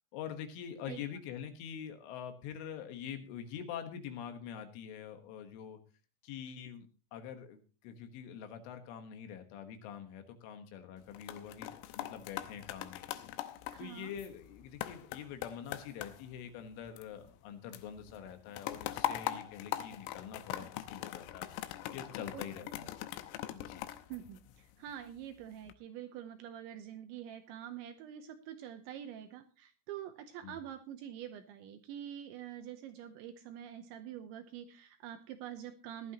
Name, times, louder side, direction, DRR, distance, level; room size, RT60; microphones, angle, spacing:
voice 1, 0.1-5.8 6.2-6.9 7.1-13.2 13.8-21.5 21.9-23.0 23.5-23.9 30.4-30.6, left 8 dB, 75° left, 7 dB, 3.7 m, -45 dB
sound 1, 11.0-17.5 17.7-24.9 25.4-25.7, left 13 dB, 90° left, 3.5 m, -42 dB
voice 2, 13.7-14.1 22.3-22.4 24.1-36.1, right 10 dB, 75° right, 8 dB, 2.8 m, -46 dB
18.0 x 11.5 x 2.9 m, 0.35 s
omnidirectional pair, 6.0 m